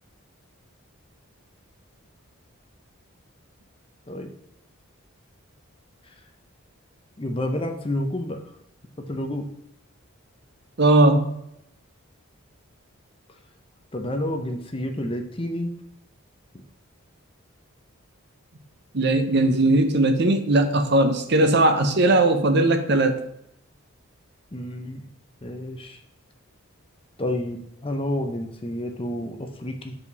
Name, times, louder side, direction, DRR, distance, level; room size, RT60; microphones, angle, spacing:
voice 1, 7.2-8.5 9.1-9.5 13.9-15.7 24.5-25.1 25.4-26.0 27.2-30.0, left 1 dB, 25° left, 5 dB, 0.7 m, -29 dB
voice 2, 10.8-11.3 18.9-23.2, right 2 dB, 50° right, 8 dB, 0.7 m, -19 dB
7.4 x 4.9 x 4.1 m, 0.80 s
head